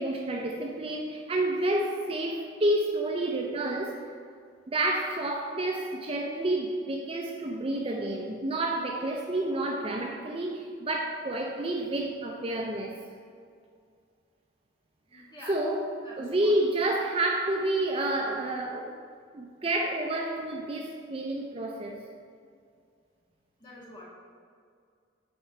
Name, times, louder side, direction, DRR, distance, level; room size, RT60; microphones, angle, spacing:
voice 1, 0.0-4.1 4.7-12.9 15.1-19.0 19.3-22.0, right 1 dB, 30° right, 1 dB, 0.4 m, -29 dB
voice 2, 15.1-15.6 16.0-16.6 23.6-24.1, left 1 dB, 25° left, -6 dB, 1.5 m, -46 dB
8.7 x 3.8 x 4.4 m, 2.2 s
head